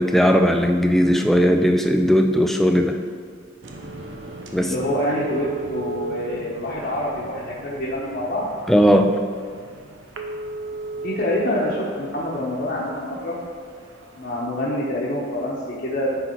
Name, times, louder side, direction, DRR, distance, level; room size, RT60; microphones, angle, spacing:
voice 1, 0.0-3.0 4.5-4.7 8.7-9.2, equal, ahead, 5 dB, 0.3 m, -17 dB
sound 1, 3.6-14.4, right 2 dB, 75° right, 0.8 m, -37 dB
voice 2, 4.6-8.5 10.9-13.4 14.2-16.1, left 1 dB, 55° left, -7 dB, 1.0 m, -26 dB
10.0 x 3.9 x 4.5 m, 2.1 s
head